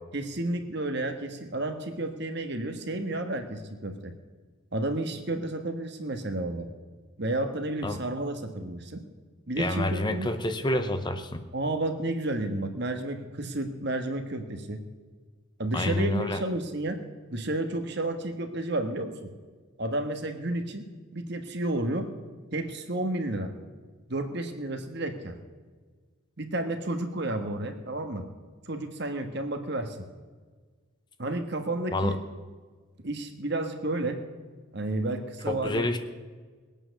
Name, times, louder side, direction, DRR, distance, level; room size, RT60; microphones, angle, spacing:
voice 1, 0.1-4.1 4.7-6.7 7.2-9.0 9.5-10.3 11.5-14.8 15.6-17.0 17.3-19.3 19.8-22.1 22.5-23.5 24.1-25.3 26.4-28.2 28.7-30.0 31.2-32.2 33.0-34.2 34.7-36.0, right 2 dB, 50° right, 6 dB, 1.5 m, -31 dB
voice 2, 9.6-11.4 15.7-16.4 31.9-32.2 35.5-36.0, left 1 dB, 20° left, 8 dB, 0.8 m, -28 dB
20.5 x 8.9 x 6.6 m, 1.5 s
head